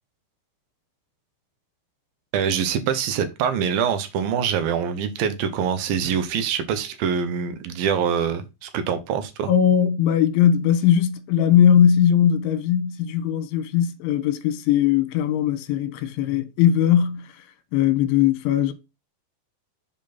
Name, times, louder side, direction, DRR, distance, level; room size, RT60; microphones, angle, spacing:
voice 1, 2.3-9.5, right 7 dB, 75° right, 2.2 m, -24 dB
voice 2, 9.5-17.4 17.7-18.7, left 9 dB, 75° left, 3.4 m, -19 dB
7.9 x 6.9 x 4.3 m
omnidirectional pair, 5.7 m